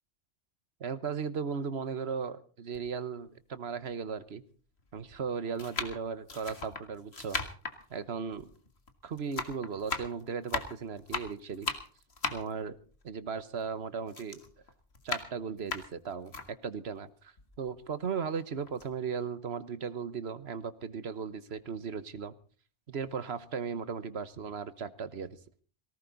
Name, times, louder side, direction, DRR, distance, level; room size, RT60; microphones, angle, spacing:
voice 1, 0.8-4.4 4.9-7.4 7.9-8.5 9.0-11.7 12.3-12.8 13.0-14.4 15.0-16.3 16.6-22.3 22.9-25.4, right 6 dB, 75° right, 14 dB, 1.4 m, -36 dB
sound 1, 2.7-2.9 3.7-3.8 4.8-5.1 5.6-8.9 9.2-13.8 14.1-16.5 17.0-17.1 17.4-18.3 18.7-18.9, left 4 dB, 75° left, 2.1 m, -38 dB
18.5 x 17.5 x 4.0 m, 0.40 s
omnidirectional pair, 1.1 m